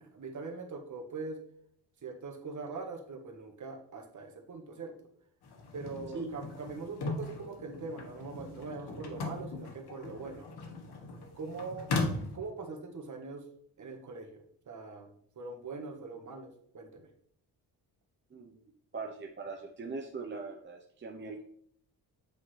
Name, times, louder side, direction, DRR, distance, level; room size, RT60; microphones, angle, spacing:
voice 1, 0.1-1.4 2.0-4.9 5.7-10.5 11.3-11.9 12.3-13.4 13.8-17.1, right 4 dB, 45° right, 3 dB, 1.5 m, -42 dB
sound 1, 5.4-12.4, left 3 dB, 70° left, 1.4 m, -38 dB
voice 2, 18.9-21.4, right 4 dB, 30° right, 2 dB, 0.8 m, -40 dB
8.3 x 3.8 x 3.3 m, 0.64 s
cardioid pair, 80°, 41 cm